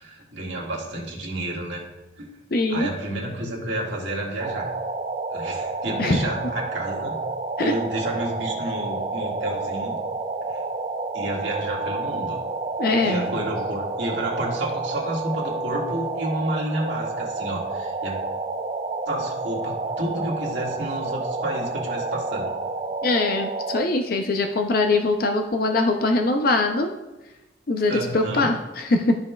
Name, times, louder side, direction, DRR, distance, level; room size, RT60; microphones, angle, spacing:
voice 1, 0.0-1.8 2.2-2.3 2.7-4.7 5.3-7.2 7.6-10.0 10.5-10.6 11.1-12.4 13.0-18.2 19.1-22.6 27.9-28.5, right 1 dB, 75° right, -2 dB, 1.8 m, -30 dB
voice 2, 2.5-2.9 6.0-6.2 7.6-7.7 12.8-13.3 23.0-26.9 27.7-29.2, left 2 dB, 50° left, 4 dB, 0.5 m, -22 dB
sound 1, 4.4-23.8, right 3 dB, 30° right, 0.4 m, -30 dB
12.5 x 5.3 x 2.3 m, 1.0 s
head